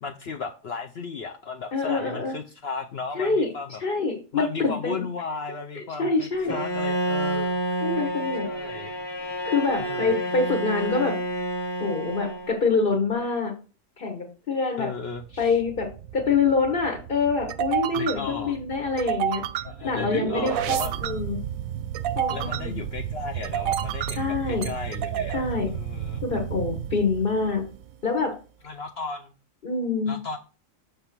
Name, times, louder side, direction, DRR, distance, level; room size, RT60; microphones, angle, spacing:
voice 1, 0.0-3.8 4.3-7.9 8.4-8.9 9.8-10.2 14.8-15.6 17.9-18.6 19.6-20.9 22.3-26.2 28.6-29.3 30.1-30.4, left 5 dB, 60° left, 4 dB, 0.8 m, -35 dB
voice 2, 1.7-2.3 3.1-3.5 3.8-5.0 5.8-6.5 7.8-8.5 9.4-11.1 11.8-13.5 14.0-14.9 15.4-15.9 16.1-19.4 19.8-21.4 22.2-22.8 24.2-24.7 25.3-25.7 26.2-27.6 28.0-28.3 29.6-30.2, left 4 dB, 45° left, 2 dB, 1.3 m, -25 dB
Bowed string instrument, 6.5-12.8, right 1 dB, 20° left, 1.0 m, -29 dB
sound 1, 15.2-27.9, right 10 dB, 90° right, 1.0 m, -31 dB
6.7 x 3.6 x 5.8 m, 0.36 s
omnidirectional pair, 1.4 m